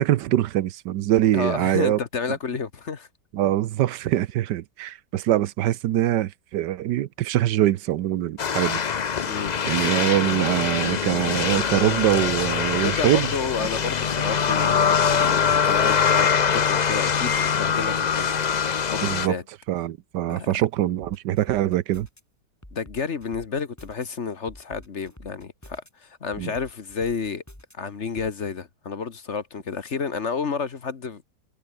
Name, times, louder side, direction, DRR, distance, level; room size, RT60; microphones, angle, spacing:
voice 1, 0.0-2.0 3.3-8.8 9.7-13.3 19.0-19.4 19.7-22.1 26.4-26.5, right 13 dB, 80° right, 1.4 m, -23 dB
voice 2, 1.3-3.1 9.3-9.5 12.8-18.5 18.8-19.4 20.3-20.6 22.7-27.4 27.8-31.2, left 5 dB, 45° left, 1.5 m, -31 dB
sound 1, 8.4-19.3, left 7 dB, 60° left, 0.4 m, -23 dB
sound 2, 21.0-22.2 22.6-24.1 24.5-25.9 26.3-27.7 28.2-28.3, left 1 dB, 10° left, 3.6 m, -46 dB
omnidirectional pair, 1.8 m